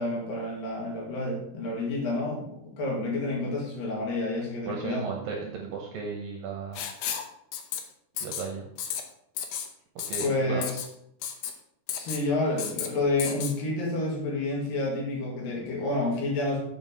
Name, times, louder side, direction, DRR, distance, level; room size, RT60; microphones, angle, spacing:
voice 1, 0.0-5.1 10.2-10.8 11.9-16.6, left 2 dB, 60° left, -3 dB, 3.6 m, -29 dB
voice 2, 4.7-6.8 8.2-8.7 10.0-10.7, right 5 dB, 75° right, 2 dB, 2.2 m, -35 dB
Writing, 6.7-7.3 7.5-7.8 8.2-8.4 8.8-9.0 9.4-9.7 10.0-10.3 10.6-10.9 11.2-11.5 11.9-12.2 12.6-12.9 13.2-13.5, left 9 dB, 85° left, 1.8 m, -32 dB
7.7 x 5.4 x 5.6 m, 0.73 s
omnidirectional pair, 4.9 m